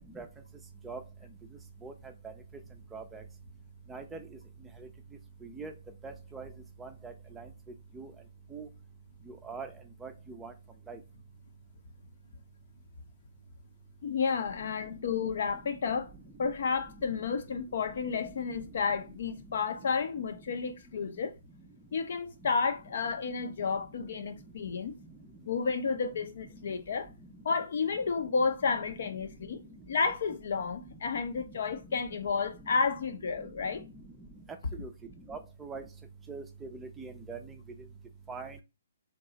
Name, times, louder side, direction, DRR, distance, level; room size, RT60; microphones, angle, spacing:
voice 1, 2.9-3.2 3.9-4.0 5.6-5.7 6.0-6.5 6.8-7.4 8.0-8.1 8.5-8.7 9.5-9.7 10.0-10.1 10.4-10.5 10.9-11.0 34.8-34.9 35.3-35.8 36.3-36.4 36.8-37.4 38.3-38.5, right 4 dB, 10° right, 0.4 m, -41 dB
voice 2, 14.0-16.1 16.4-21.4 21.9-25.0 25.5-27.1 27.4-29.6 29.9-33.8, left 5 dB, 60° left, 0.6 m, -31 dB
2.9 x 2.3 x 4.0 m
hypercardioid pair, 140°, 0 cm